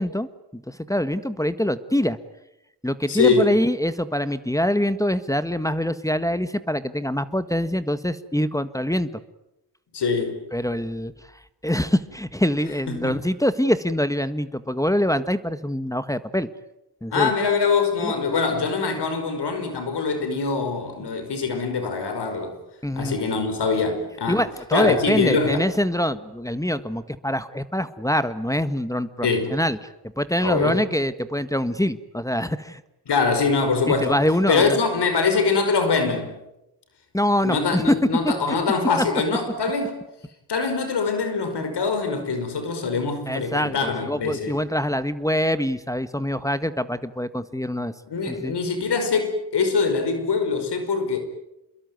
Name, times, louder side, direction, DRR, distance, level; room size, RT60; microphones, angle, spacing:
voice 1, 0.0-2.2 2.8-9.1 10.5-11.1 11.6-16.5 17.0-17.3 18.0-18.1 22.8-23.2 24.3-29.8 30.2-32.8 33.9-34.8 37.1-37.9 38.2-38.6 43.3-47.9 48.3-48.5, equal, 10° left, 12 dB, 1.6 m, -24 dB
voice 2, 3.1-3.6 9.9-10.4 12.9-13.1 17.1-22.5 23.0-24.4 24.7-25.7 29.2-29.5 30.4-30.8 33.1-34.2 34.5-36.3 37.4-40.0 40.5-44.5 48.1-51.2, left 4 dB, 85° left, 7 dB, 5.5 m, -23 dB
28.0 x 22.0 x 9.5 m, 0.89 s
cardioid pair, 60°, 40 cm